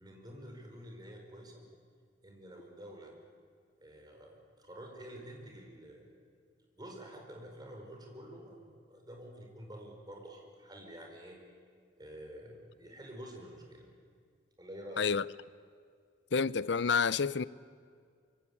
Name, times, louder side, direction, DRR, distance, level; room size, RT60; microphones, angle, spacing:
voice 1, 0.0-1.7 2.2-3.1 3.8-6.1 6.7-11.4 12.0-13.9 14.6-15.1, right 1 dB, 20° right, 4.8 m, -49 dB
voice 2, 16.3-17.4, left 5 dB, 65° left, 0.6 m, -29 dB
25.5 x 23.5 x 8.5 m
head